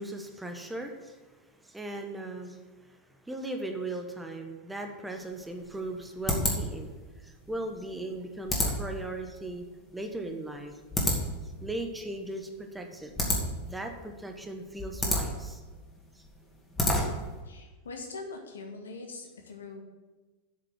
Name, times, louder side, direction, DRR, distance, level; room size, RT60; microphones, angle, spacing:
voice 1, 0.0-6.9 7.2-9.6 9.9-10.7 11.6-13.1 13.6-15.6 16.1-16.2 17.0-17.1, right 2 dB, 5° right, 4 dB, 1.2 m, -38 dB
sound 1, 5.2-17.4, left 1 dB, 15° left, 2.4 m, -32 dB
voice 2, 17.5-19.8, left 3 dB, 70° left, 2 dB, 1.7 m, -42 dB
7.9 x 6.6 x 7.6 m, 1.3 s
figure-of-eight pair, 90°, 0 cm